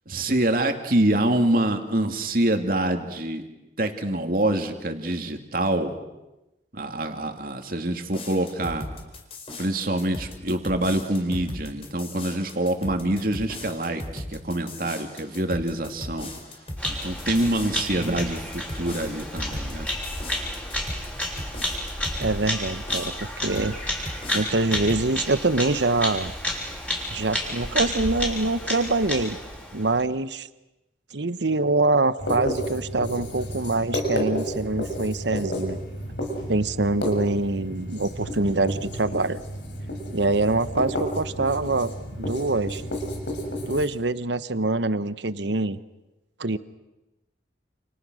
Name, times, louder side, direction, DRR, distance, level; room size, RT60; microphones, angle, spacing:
voice 1, 0.1-3.4 3.8-6.0 6.7-8.8 9.6-16.3 16.9-19.9, right 1 dB, 50° right, 5 dB, 2.7 m, -25 dB
sound 1, 8.1-22.4 22.9-23.7 24.0-25.1, left 1 dB, 30° left, 4.4 m, -38 dB
Bird vocalization bird call bird song, 16.8-30.0, left 1 dB, 5° left, 6.1 m, -31 dB
voice 2, 22.2-23.8 24.3-26.3 27.1-29.4 29.7-30.5 31.1-35.8 36.5-39.4 40.1-41.9 42.2-42.8 43.7-45.8 46.4-46.6, right 2 dB, 75° right, 14 dB, 1.0 m, -24 dB
Writing, 32.2-43.9, equal, 85° left, 7.1 m, -32 dB
29.5 x 29.5 x 6.4 m, 0.99 s
head